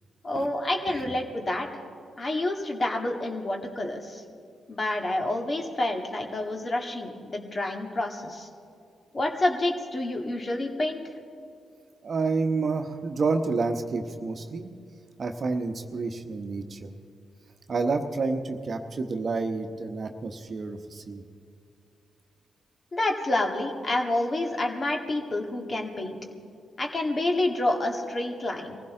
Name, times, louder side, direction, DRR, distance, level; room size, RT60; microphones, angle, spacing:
voice 1, 0.2-1.8 2.2-4.2 4.7-8.5 9.1-11.0 22.9-26.2 26.8-28.8, left 1 dB, 40° left, 2 dB, 1.9 m, -28 dB
voice 2, 12.0-14.7 15.2-16.9 17.7-21.2, right 4 dB, 50° right, 6 dB, 1.0 m, -29 dB
23.0 x 16.0 x 3.8 m, 2.4 s
hypercardioid pair, 40°, 0 cm